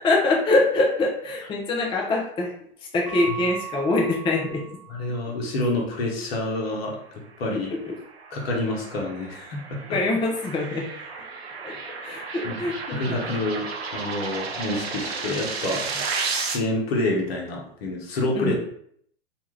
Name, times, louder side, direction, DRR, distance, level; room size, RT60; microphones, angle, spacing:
voice 1, 0.0-2.5 2.9-4.6 7.5-7.9 9.9-10.9 11.6-11.8 12.0-13.4 18.3-18.6, left 2 dB, 15° left, -1 dB, 0.5 m, -24 dB
Keyboard (musical) / Bell, 3.0-5.5, right 10 dB, 50° right, 0.9 m, -39 dB
voice 2, 4.9-6.9 7.4-7.7 8.3-9.8 12.4-12.6 12.9-13.7 13.9-16.0 16.5-18.6, left 1 dB, 75° left, -1 dB, 1.0 m, -27 dB
sound 1, 7.7-16.6, right 4 dB, 80° right, 0.7 m, -33 dB
2.7 x 2.2 x 3.2 m, 0.67 s
hypercardioid pair, 105°, 31 cm